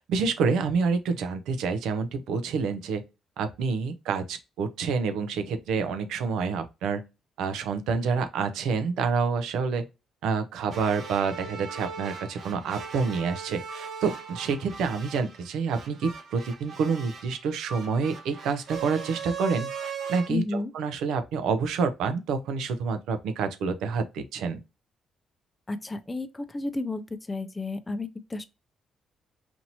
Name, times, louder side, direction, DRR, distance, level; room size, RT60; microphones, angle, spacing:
voice 1, 0.0-3.0 3.4-7.0 7.4-9.9 10.2-24.6, right 5 dB, 85° right, 0.6 m, -28 dB
sound 1, 10.7-20.3, right 6 dB, 60° right, 1.0 m, -39 dB
voice 2, 20.3-20.7 25.7-27.0 27.3-28.4, left 3 dB, 20° left, 0.5 m, -32 dB
4.3 x 2.8 x 2.7 m
cardioid pair, 90°, 0 cm